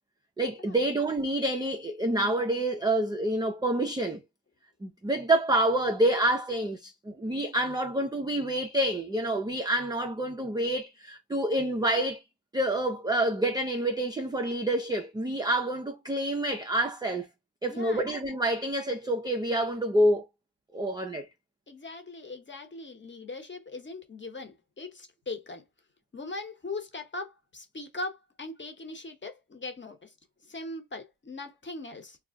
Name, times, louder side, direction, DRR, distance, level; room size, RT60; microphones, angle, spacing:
voice 1, 0.4-4.2 4.8-12.2 12.5-17.3 17.6-20.2 20.7-21.3, right 1 dB, 10° right, 0.4 m, -27 dB
voice 2, 17.7-18.1 21.7-25.6 26.1-30.1 30.4-32.2, left 2 dB, 25° left, 0.9 m, -40 dB
2.4 x 2.1 x 3.5 m
supercardioid pair, 70°, 48 cm